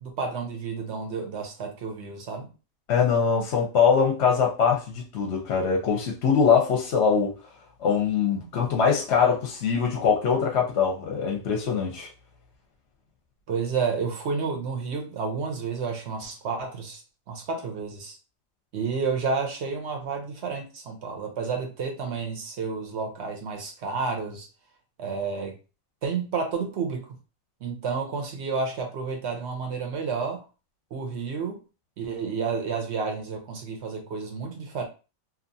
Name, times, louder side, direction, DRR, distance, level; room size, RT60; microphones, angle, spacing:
voice 1, 0.0-2.5 13.5-17.0 17.3-18.2 18.7-24.5 25.0-25.5 26.0-27.1 27.6-30.4 30.9-31.6 32.0-34.8, right 5 dB, 60° right, 0.8 m, -30 dB
voice 2, 2.9-7.3 7.8-12.1, left 6 dB, 60° left, 0.8 m, -22 dB
2.8 x 2.4 x 2.6 m
omnidirectional pair, 1.4 m